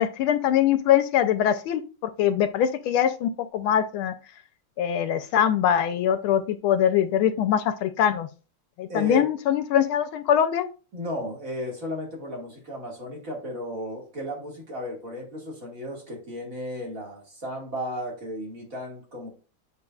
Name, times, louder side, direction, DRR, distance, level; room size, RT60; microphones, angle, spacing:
voice 1, 0.0-4.1 4.8-8.3 8.8-10.6, left 9 dB, 80° left, 10 dB, 1.4 m, -23 dB
voice 2, 8.9-9.2 10.9-19.3, equal, 40° right, -1 dB, 2.2 m, -34 dB
8.2 x 5.1 x 2.3 m, 0.35 s
omnidirectional pair, 2.4 m